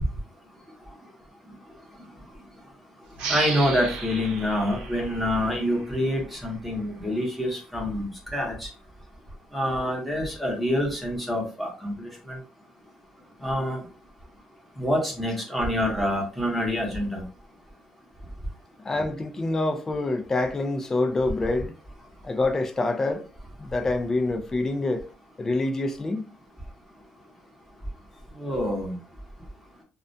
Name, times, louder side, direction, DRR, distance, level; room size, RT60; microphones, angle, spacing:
sound 1, 3.1-6.4, right 4 dB, 90° right, 0.7 m, -35 dB
voice 1, 3.3-8.7 9.5-12.4 13.4-13.8 14.8-17.2 28.4-29.0, equal, ahead, 0.9 m, -26 dB
voice 2, 18.8-21.7 22.2-23.3 23.6-25.1 25.4-26.3, left 2 dB, 20° left, 0.4 m, -26 dB
2.4 x 2.2 x 2.6 m
cardioid pair, 125°, 2 cm